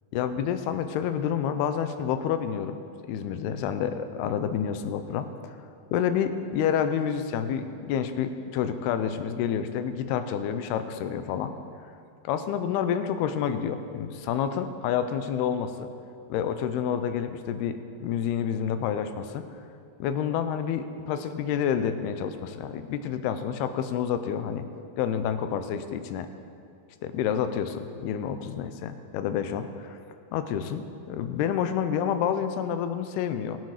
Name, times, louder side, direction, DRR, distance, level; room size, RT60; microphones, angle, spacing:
voice 1, 0.1-2.8 3.1-5.6 5.9-11.6 12.2-15.9 16.3-19.5 20.0-24.6 25.0-26.3 27.0-30.0 30.3-33.6, left 8 dB, 90° left, 9 dB, 2.8 m, -29 dB
22.5 x 8.3 x 5.0 m, 2.4 s
omnidirectional pair, 4.5 m